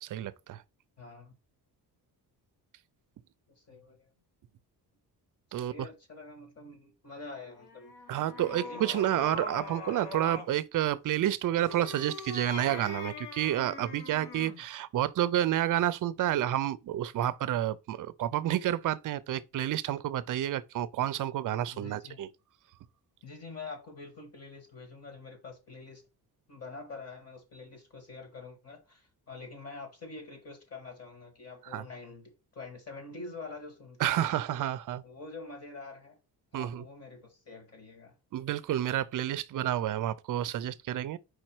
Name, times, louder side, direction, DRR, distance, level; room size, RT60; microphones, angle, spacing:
voice 1, 0.0-0.6 5.5-5.9 8.1-22.3 31.6-31.8 34.0-35.0 36.5-36.8 38.3-41.2, right 12 dB, 55° right, 0.5 m, -30 dB
voice 2, 1.0-1.3 3.5-4.1 5.5-7.9 8.3-8.8 14.2-14.4 21.7-22.2 23.2-26.0 26.5-34.3 35.0-36.2 36.5-38.1, left 3 dB, 40° left, 1.6 m, -46 dB
sound 1, 7.6-10.6 11.5-14.7, left 3 dB, 70° left, 1.3 m, -42 dB
4.9 x 4.3 x 4.5 m
cardioid pair, 170°, 40 cm